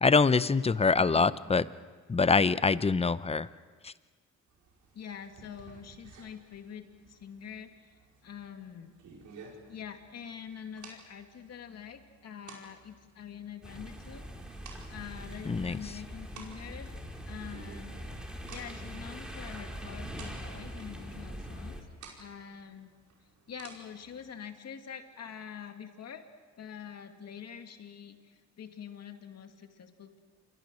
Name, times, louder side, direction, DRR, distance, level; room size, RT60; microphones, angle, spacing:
voice 1, 0.0-1.6 2.1-3.5 3.8-3.9 15.5-15.8, left 4 dB, 20° left, 16 dB, 0.7 m, -24 dB
sound 1, 4.5-24.4, right 5 dB, 75° right, 5.3 m, -55 dB
voice 2, 4.9-9.0 9.7-14.3 14.9-17.0 17.3-17.9 18.5-21.8 22.2-22.9 23.5-26.3 26.6-30.2, left 8 dB, 55° left, 6 dB, 2.5 m, -45 dB
sound 2, 13.6-21.8, equal, 5° right, 4.1 m, -42 dB
28.0 x 24.0 x 6.4 m, 1.5 s
cardioid pair, 90°, 30 cm